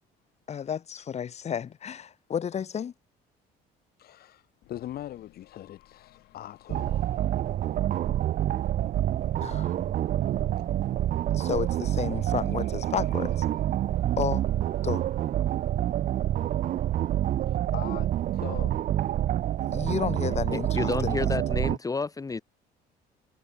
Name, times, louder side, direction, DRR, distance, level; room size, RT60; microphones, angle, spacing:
voice 1, 0.5-2.9 9.4-9.7 11.3-13.4 14.2-14.4 14.8-15.0 19.7-21.3, left 8 dB, 40° left, 1.3 m, -32 dB
voice 2, 4.0-7.0 8.7-8.8 17.5-18.8, left 12 dB, 65° left, 4.7 m, -41 dB
sound 1, 4.6-17.3, left 17 dB, 80° left, 6.0 m, -57 dB
sound 2, 6.7-21.8, right 12 dB, 55° right, 0.6 m, -27 dB
voice 3, 20.5-22.4, left 4 dB, 20° left, 1.5 m, -30 dB
cardioid pair, 110°, 17 cm